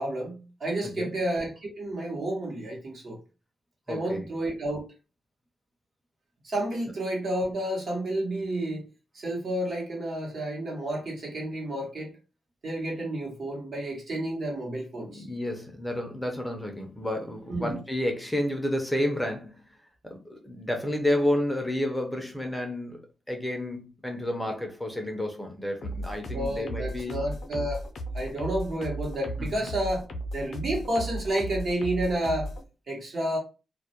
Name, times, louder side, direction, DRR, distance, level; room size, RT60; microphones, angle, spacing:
voice 1, 0.0-3.2 3.9-4.9 6.4-8.9 9.1-12.1 12.6-15.3 17.5-17.8 26.3-27.9 28.1-30.1 30.3-32.5 32.9-33.4, right 1 dB, 55° right, 0.9 m, -30 dB
voice 2, 3.9-4.2 15.1-19.6 20.0-23.0 23.3-27.2 29.4-29.7, left 1 dB, 5° left, 0.5 m, -30 dB
sound 1, 25.8-32.6, right 1 dB, 65° left, 0.4 m, -35 dB
2.2 x 2.1 x 2.7 m
wide cardioid pair, 120°, 0 cm